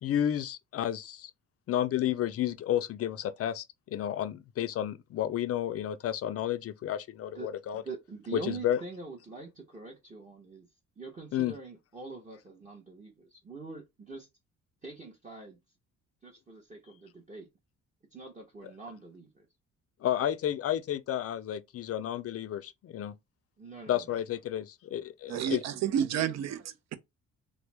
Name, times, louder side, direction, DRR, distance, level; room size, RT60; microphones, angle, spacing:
voice 1, 0.0-1.3 1.7-7.8 8.3-8.8 11.3-11.5 20.0-23.1 23.9-25.6, left 11 dB, 50° left, 0.4 m, -31 dB
voice 2, 7.3-10.7 11.0-14.3 14.8-15.6 16.2-17.5 18.1-19.5 23.6-24.2, right 3 dB, 25° right, 0.8 m, -44 dB
voice 3, 25.3-27.0, right 9 dB, 60° right, 0.5 m, -30 dB
3.1 x 2.0 x 3.2 m
cardioid pair, 90°, 30 cm